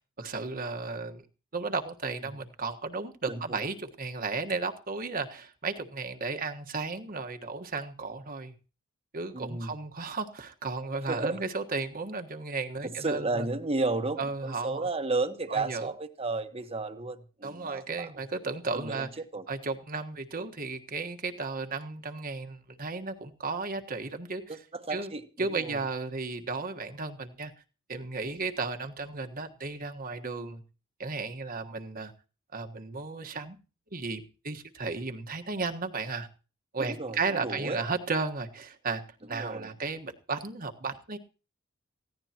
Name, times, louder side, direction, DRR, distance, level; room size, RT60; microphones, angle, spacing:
voice 1, 0.2-1.2 1.5-8.5 9.1-13.5 14.2-14.9 15.5-15.9 17.4-19.1 19.5-24.6 24.9-25.1 25.4-27.5 27.9-30.6 31.0-32.1 32.5-33.6 33.9-36.3 36.7-39.0 39.3-41.2, right 4 dB, 45° right, 1.5 m, -34 dB
voice 2, 3.3-3.7 9.3-9.8 11.1-11.4 12.8-18.1 18.7-19.5 24.5-25.8 36.8-37.8 39.3-39.7, right 3 dB, 30° right, 1.3 m, -33 dB
20.0 x 16.0 x 3.0 m
head